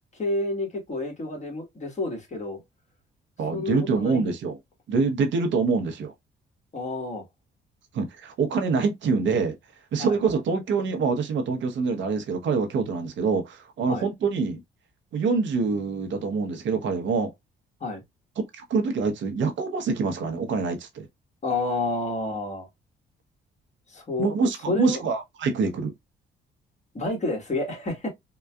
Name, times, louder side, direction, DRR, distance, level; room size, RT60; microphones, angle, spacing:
voice 1, 0.2-2.6 3.5-4.3 6.7-7.2 10.0-10.2 13.9-14.1 17.8-18.0 21.4-22.7 23.9-24.3 24.7-25.0 26.9-28.1, left 2 dB, 35° left, 1.7 m, -29 dB
voice 2, 3.4-4.6 4.9-6.1 7.9-9.6 9.9-14.6 15.1-17.3 18.4-21.1 24.2-25.9, right 4 dB, 70° right, 0.9 m, -25 dB
3.8 x 2.3 x 2.2 m
cardioid pair, 90°, 20 cm